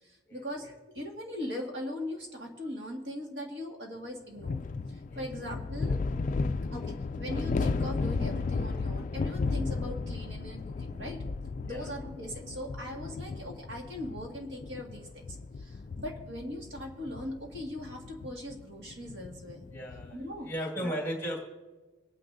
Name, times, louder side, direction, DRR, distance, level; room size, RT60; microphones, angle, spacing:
voice 1, 0.0-4.6 4.9-6.0 6.7-11.2 11.6-19.7 20.1-20.5 20.8-21.0, left 1 dB, 55° right, 0 dB, 2.0 m, -40 dB
sound 1, 4.4-20.2, left 4 dB, 40° left, 0.3 m, -35 dB
voice 2, 19.7-21.4, equal, 10° left, -1 dB, 2.0 m, -36 dB
25.5 x 9.5 x 2.6 m, 1.2 s
head